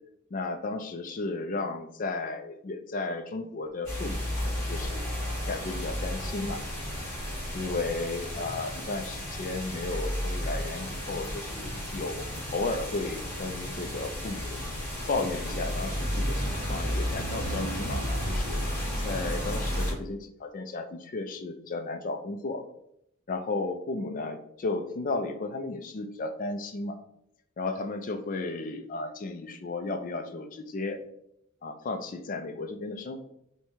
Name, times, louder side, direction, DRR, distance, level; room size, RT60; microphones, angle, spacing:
voice 1, 0.3-5.1 5.5-6.6 7.5-12.3 12.5-14.6 15.1-18.6 19.0-22.6 23.3-27.0 27.6-31.0 31.6-33.3, left 3 dB, 40° left, 6 dB, 0.4 m, -34 dB
sound 1, 3.8-19.9, equal, 10° left, 1.5 m, -32 dB
5.4 x 2.2 x 3.1 m, 0.75 s
head